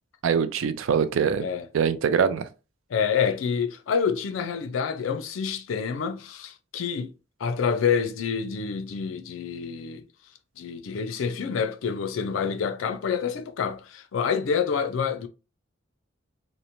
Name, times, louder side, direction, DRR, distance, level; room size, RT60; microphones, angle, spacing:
voice 1, 0.2-1.4 1.7-2.4, right 6 dB, 75° right, 0.3 m, -23 dB
voice 2, 2.9-7.1 7.4-10.0 10.6-15.3, left 6 dB, 80° left, 0.4 m, -27 dB
2.9 x 2.1 x 2.5 m
head